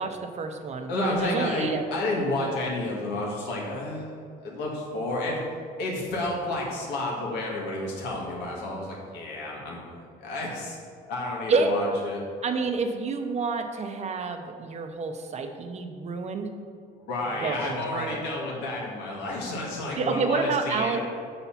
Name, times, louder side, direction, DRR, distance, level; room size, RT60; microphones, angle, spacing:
voice 1, 0.0-1.8 11.5-11.7 12.4-16.5 17.4-18.2 20.0-21.0, right 4 dB, 40° right, 6 dB, 0.7 m, -28 dB
voice 2, 0.9-5.4 5.8-10.8 11.1-12.2 16.9-21.0, left 1 dB, 90° left, -3 dB, 1.9 m, -31 dB
6.8 x 4.2 x 5.8 m, 2.3 s
cardioid pair, 110°, 17 cm